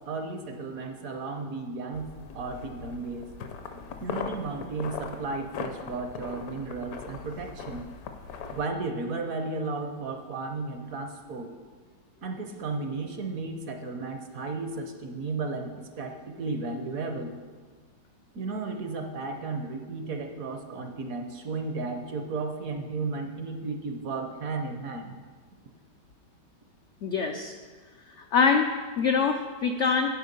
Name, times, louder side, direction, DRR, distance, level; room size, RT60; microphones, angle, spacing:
voice 1, 0.0-2.1 2.3-3.3 4.0-7.9 8.5-11.5 12.2-17.3 18.3-25.1, right 3 dB, 65° right, 5 dB, 1.0 m, -34 dB
sound 1, 1.9-8.7, left 6 dB, 65° left, 1.1 m, -39 dB
voice 2, 27.0-27.5 28.1-30.1, left 5 dB, 85° left, 4 dB, 0.6 m, -25 dB
9.3 x 6.4 x 5.3 m, 1.4 s
omnidirectional pair, 1.9 m